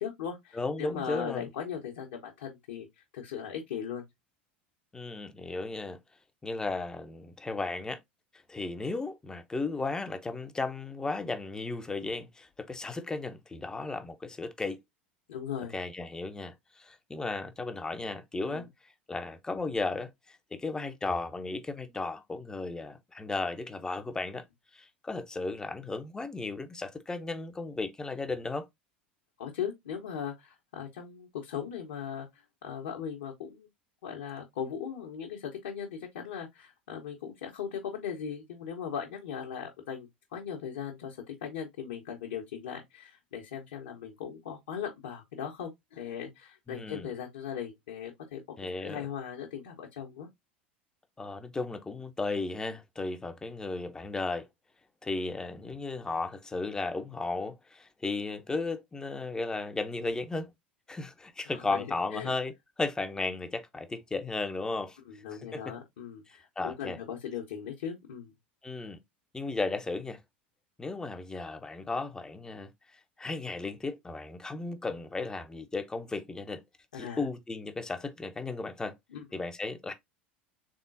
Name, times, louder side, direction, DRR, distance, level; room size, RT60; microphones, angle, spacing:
voice 1, 0.0-2.9 3.1-4.0 15.3-15.7 18.5-18.6 29.4-33.7 34.0-40.1 40.3-48.4 48.8-50.3 61.5-61.8 62.1-62.3 65.1-68.3 76.9-77.3 79.1-79.2, left 8 dB, 65° left, 1.0 m, -38 dB
voice 2, 0.5-1.5 4.9-6.0 6.4-8.0 8.5-14.8 15.7-24.4 24.7-28.7 46.7-47.1 48.6-49.1 51.2-54.5 55.0-60.5 60.9-65.0 65.5-65.7 66.3-67.0 68.6-69.0 69.3-70.2 70.8-72.7 73.2-76.6 76.9-78.9 79.3-79.9, left 3 dB, 10° left, 0.7 m, -35 dB
3.7 x 3.6 x 2.6 m
figure-of-eight pair, 75°, 6 cm